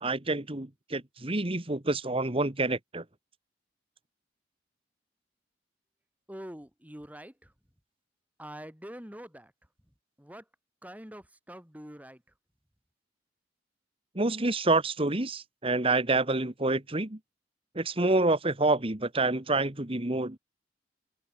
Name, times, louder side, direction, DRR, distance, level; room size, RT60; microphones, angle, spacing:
voice 1, 0.0-3.0 14.1-17.2 17.7-20.4, right 2 dB, 30° right, 1.7 m, -27 dB
voice 2, 6.3-7.3 8.4-9.5 10.2-10.4 10.8-12.2, equal, 10° right, 4.9 m, -45 dB
open air
head